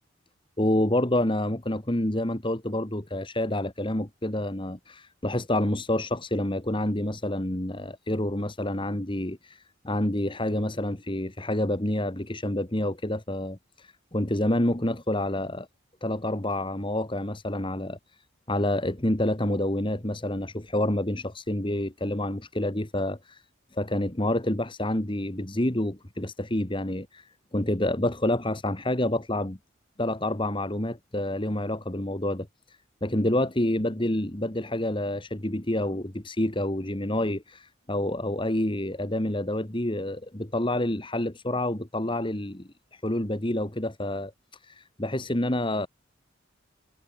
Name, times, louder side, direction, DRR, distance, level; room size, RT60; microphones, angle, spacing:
voice 1, 0.6-15.7 16.0-23.5 23.7-29.6 30.0-45.9, left 1 dB, 25° left, 1.8 m, -28 dB
head